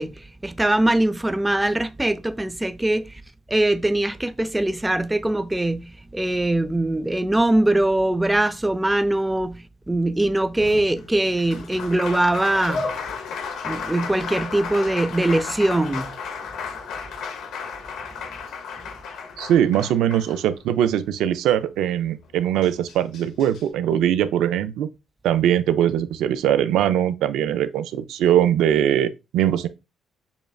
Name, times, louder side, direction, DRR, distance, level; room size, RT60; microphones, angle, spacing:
voice 1, 0.0-3.2 3.5-12.9 13.6-16.1, right 1 dB, 10° right, 0.4 m, -22 dB
Applause, 10.6-20.9 22.2-22.3 22.6-23.6, left 5 dB, 85° left, 0.8 m, -33 dB
voice 2, 19.4-24.9 25.2-29.7, right 10 dB, 85° right, 0.4 m, -21 dB
7.0 x 2.5 x 2.3 m
cardioid pair, 90°, 0 cm